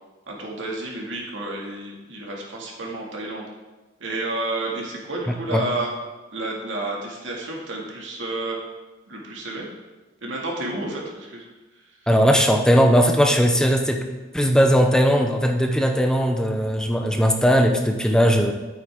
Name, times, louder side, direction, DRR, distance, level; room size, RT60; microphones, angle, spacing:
voice 1, 0.3-3.5 4.0-5.9 6.3-8.6 9.1-9.7 10.2-11.5 11.7-11.8, right 2 dB, 90° right, -2 dB, 2.1 m, -30 dB
voice 2, 12.1-14.0 14.3-18.5, equal, 5° left, 3 dB, 0.6 m, -18 dB
9.7 x 8.7 x 3.6 m, 1.2 s
head